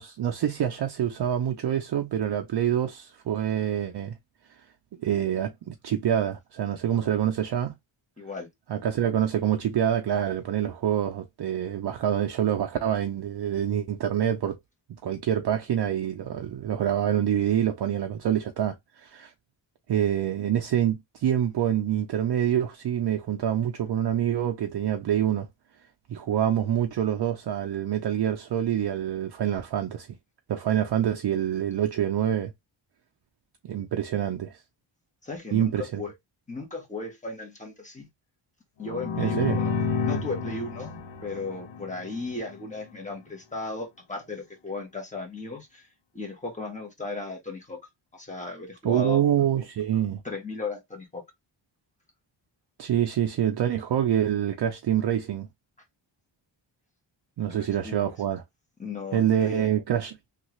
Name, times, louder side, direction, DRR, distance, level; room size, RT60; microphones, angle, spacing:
voice 1, 0.0-4.2 5.0-7.7 8.7-14.6 15.0-19.3 19.9-25.5 26.1-30.1 30.5-32.5 33.6-34.6 35.5-36.0 39.2-39.6 48.8-50.2 52.8-55.5 57.4-58.4 59.1-60.2, right 10 dB, 60° right, 0.5 m, -26 dB
voice 2, 8.2-8.5 35.2-36.1 36.5-38.1 38.8-39.7 40.0-45.9 46.1-47.8 48.1-49.2 50.2-51.2 57.5-58.1 58.8-59.7, left 3 dB, 15° left, 1.0 m, -36 dB
sound 1, 38.8-42.5, left 5 dB, 70° left, 0.9 m, -31 dB
3.1 x 2.4 x 2.9 m
wide cardioid pair, 160°, 47 cm